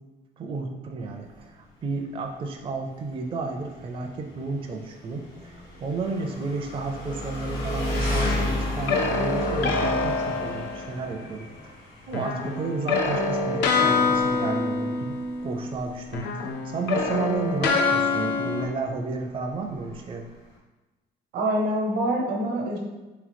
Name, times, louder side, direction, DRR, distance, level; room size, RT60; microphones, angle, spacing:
voice 1, 0.4-11.5 12.1-15.2 15.4-20.2, right 3 dB, 30° right, 3 dB, 0.4 m, -32 dB
Engine, 1.0-20.6, left 1 dB, 60° left, 1.3 m, -35 dB
sound 1, 8.1-11.2 12.1-15.8 16.1-18.7, left 4 dB, 80° left, 0.6 m, -26 dB
voice 2, 21.3-22.8, right 1 dB, 85° right, -1 dB, 1.0 m, -25 dB
3.8 x 3.0 x 3.4 m, 1.1 s
cardioid pair, 110°, 17 cm